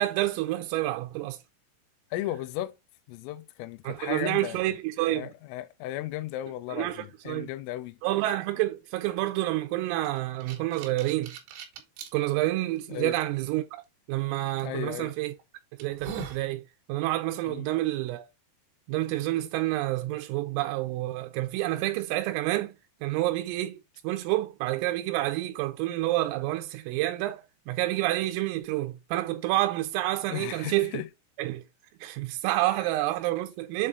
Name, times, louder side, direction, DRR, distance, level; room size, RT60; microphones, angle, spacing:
voice 1, 0.0-1.4 3.8-5.3 6.7-7.5 8.0-11.3 12.1-13.8 14.1-15.3 15.8-16.6 16.9-18.3 18.9-22.7 23.0-30.9 31.4-31.6 32.0-33.9, right 16 dB, 85° right, 3.2 m, -28 dB
voice 2, 2.1-2.8 3.1-4.6 5.1-8.0 12.9-13.2 14.6-15.1 17.5-17.7 30.3-31.1, left 14 dB, 85° left, 3.1 m, -35 dB
sound 1, 10.0-12.1 12.8-12.9 14.6-14.8 15.3-15.4 15.8-16.5, right 5 dB, 70° right, 2.9 m, -40 dB
7.8 x 3.7 x 3.9 m
omnidirectional pair, 5.9 m